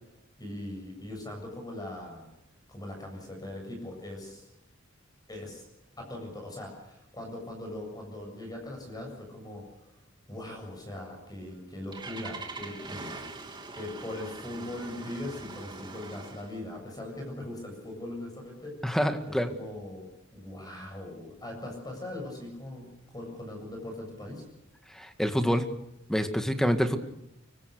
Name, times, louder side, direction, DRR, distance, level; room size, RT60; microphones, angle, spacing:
voice 1, 0.4-2.3 2.7-4.5 5.3-5.6 6.0-9.9 10.3-13.1 13.7-19.0 19.3-24.4, left 1 dB, 20° left, 2 dB, 7.4 m, -40 dB
Engine starting, 11.4-16.6, right 3 dB, 25° right, 3.0 m, -43 dB
voice 2, 18.8-19.5 24.9-25.7 26.1-27.0, equal, ahead, 7 dB, 2.0 m, -26 dB
24.5 x 24.5 x 6.7 m, 0.86 s
head